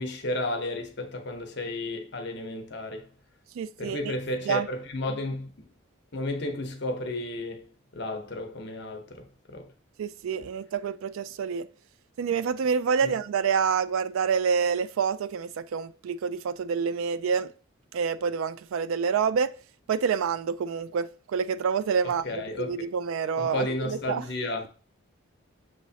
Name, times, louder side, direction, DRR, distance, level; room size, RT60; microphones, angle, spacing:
voice 1, 0.0-3.1 3.8-5.7 6.1-9.7 13.0-13.1 22.2-22.9 23.4-24.7, left 1 dB, 55° left, 0.7 m, -33 dB
voice 2, 3.6-4.1 4.5-4.7 10.0-11.7 12.2-17.5 17.9-19.5 19.9-22.2 22.6-24.2, right 6 dB, 80° right, 0.3 m, -27 dB
6.3 x 3.0 x 2.7 m
head